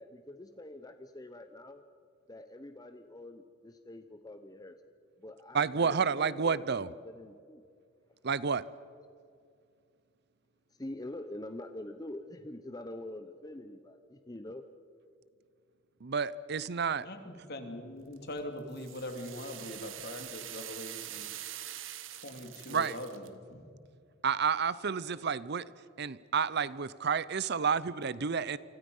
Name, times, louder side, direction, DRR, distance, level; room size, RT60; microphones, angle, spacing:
voice 1, 0.0-1.8 2.3-4.8 5.2-7.6 10.8-14.6, left 1 dB, 20° left, 8 dB, 0.9 m, -45 dB
voice 2, 5.5-6.9 8.2-8.6 16.0-17.1 22.7-23.0 24.2-25.7 26.0-28.6, right 6 dB, 60° right, 18 dB, 0.7 m, -30 dB
voice 3, 16.9-21.3 22.1-23.7, left 1 dB, 55° left, 5 dB, 2.9 m, -42 dB
sound 1, 18.1-23.3, right 12 dB, 85° right, 1.3 m, -44 dB
28.0 x 25.0 x 5.5 m, 2.3 s
head